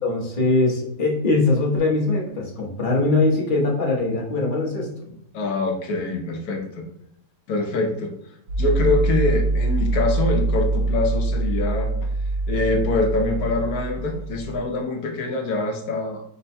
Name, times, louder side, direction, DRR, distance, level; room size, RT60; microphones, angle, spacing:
voice 1, 0.0-4.9, left 2 dB, 40° left, -3 dB, 0.7 m, -21 dB
voice 2, 5.3-6.8 7.5-8.1 8.6-11.9 12.5-16.2, left 2 dB, 65° left, 3 dB, 1.0 m, -24 dB
sound 1, 8.5-14.6, right 2 dB, 65° right, 0.9 m, -24 dB
5.3 x 2.2 x 4.1 m, 0.72 s
omnidirectional pair, 2.2 m